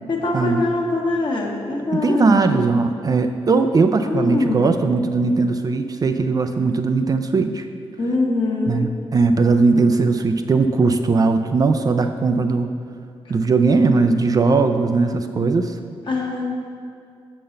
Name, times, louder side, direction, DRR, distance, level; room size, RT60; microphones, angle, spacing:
voice 1, 0.1-2.6 4.0-4.8 8.0-8.9 13.2-13.3 16.1-16.4, left 2 dB, 50° left, -2 dB, 1.3 m, -23 dB
voice 2, 1.9-7.7 8.7-12.7 13.3-15.8, right 4 dB, 35° right, 7 dB, 0.4 m, -19 dB
6.8 x 3.8 x 6.4 m, 2.3 s
cardioid pair, 80°, 10 cm